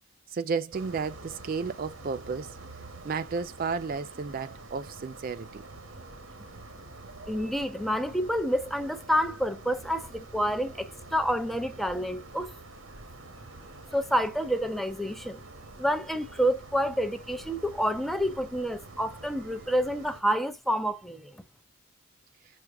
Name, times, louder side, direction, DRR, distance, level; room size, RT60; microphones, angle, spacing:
voice 1, 0.3-2.6 3.0-5.6, right 5 dB, 45° right, 0.4 m, -32 dB
sound 1, 0.7-20.2, right 2 dB, 80° right, 1.6 m, -47 dB
voice 2, 7.3-12.6 13.9-15.4 15.8-21.4, equal, ahead, 0.7 m, -28 dB
5.9 x 4.8 x 3.4 m
head